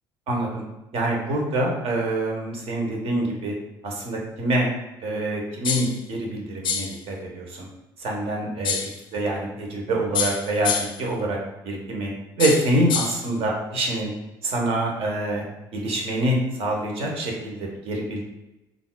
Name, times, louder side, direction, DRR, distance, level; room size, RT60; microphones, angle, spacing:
voice 1, 0.3-0.6 0.9-3.5 3.8-4.7 5.0-7.7 8.0-11.4 11.6-12.1 12.4-14.1 14.4-15.4 15.7-18.2, right 1 dB, 55° right, 0 dB, 0.8 m, -26 dB
sound 1, 5.6-6.0 6.6-7.0 8.6-9.0 10.1-11.0 12.4-13.2, left 6 dB, 45° left, 0.4 m, -26 dB
3.7 x 2.4 x 2.2 m, 0.98 s
hypercardioid pair, 60°, 11 cm